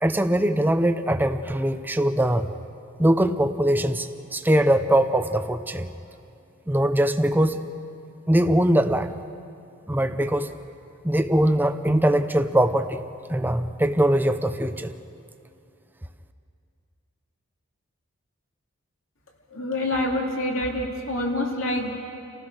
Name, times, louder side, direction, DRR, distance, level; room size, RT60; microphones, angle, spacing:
voice 1, 0.0-2.5 3.0-5.9 6.7-7.6 8.3-9.2 9.9-10.5 11.0-13.0 13.3-14.9, right 1 dB, 10° right, 9 dB, 0.6 m, -22 dB
voice 2, 19.5-21.9, left 1 dB, 65° left, 0 dB, 2.9 m, -26 dB
29.0 x 15.5 x 6.4 m, 2.5 s
head